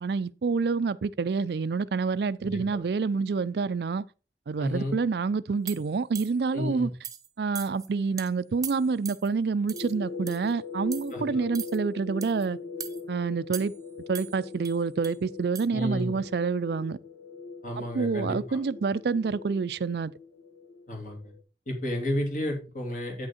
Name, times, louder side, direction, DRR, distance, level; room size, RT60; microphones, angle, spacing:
voice 1, 0.0-4.0 4.5-6.9 7.4-12.6 13.1-13.7 14.1-17.0 17.8-20.1, right 4 dB, 65° right, 0.4 m, -28 dB
voice 2, 2.4-2.8 4.6-4.9 6.5-6.9 11.1-11.4 15.7-16.2 17.6-18.6 20.9-21.2 21.7-23.3, left 1 dB, 45° left, 2.8 m, -32 dB
sound 1, 5.7-6.5 7.0-7.3 7.6-7.9 8.2-8.3 8.6-9.3 9.7-9.9 10.3-10.5 10.9-11.1 11.5-11.8 12.2-12.5 12.8-13.0 13.5-13.9 14.1-15.2 15.6-15.7, right 8 dB, 20° right, 0.7 m, -40 dB
sound 2, 9.7-21.4, left 4 dB, 85° left, 1.2 m, -41 dB
8.9 x 6.2 x 4.3 m
head